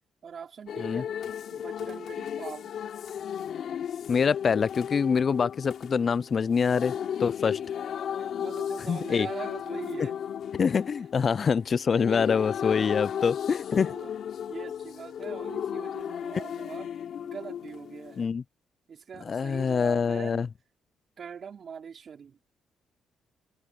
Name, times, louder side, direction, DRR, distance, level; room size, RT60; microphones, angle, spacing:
voice 1, 0.2-1.1 1.5-2.7 7.4-7.6 8.2-10.2 13.7-14.1 14.5-16.9 17.2-18.4 18.9-20.4 21.2-22.4, right 7 dB, 50° right, 4.9 m, -42 dB
sound 1, 0.7-18.2, left 9 dB, 65° left, 3.6 m, -35 dB
voice 2, 4.1-6.9 7.2-7.6 8.9-9.3 10.6-13.9 18.2-18.4 19.3-20.5, left 6 dB, 45° left, 0.4 m, -25 dB
cardioid pair, 90°, 0 cm